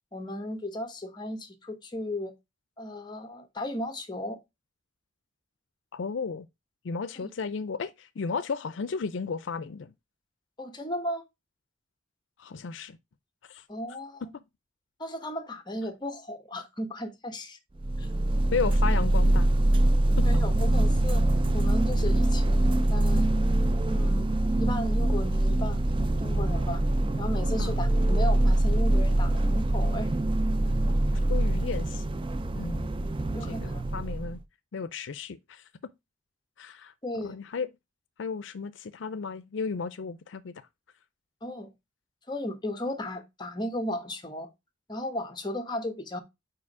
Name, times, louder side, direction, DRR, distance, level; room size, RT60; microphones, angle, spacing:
voice 1, 0.1-2.3 2.8-4.4 7.2-7.3 10.6-11.2 13.7-14.2 15.0-17.6 18.0-18.1 20.2-21.2 21.5-23.3 23.8-25.8 26.2-26.8 27.2-30.1 30.7-30.8 33.3-33.8 37.0-37.4 41.4-41.7 42.3-44.5 44.9-46.2, left 1 dB, 25° left, 1.2 m, -35 dB
voice 2, 5.9-6.5 6.8-9.9 12.4-13.0 13.5-13.6 14.3-14.4 18.5-19.5 20.2-20.3 27.6-27.7 31.3-32.0 32.5-32.9 33.4-34.4 34.7-35.6 36.6-36.9 37.2-37.7 38.2-40.5, left 5 dB, 75° left, 0.5 m, -34 dB
sound 1, 17.8-34.4, right 1 dB, 30° right, 0.4 m, -24 dB
5.0 x 4.8 x 4.7 m
head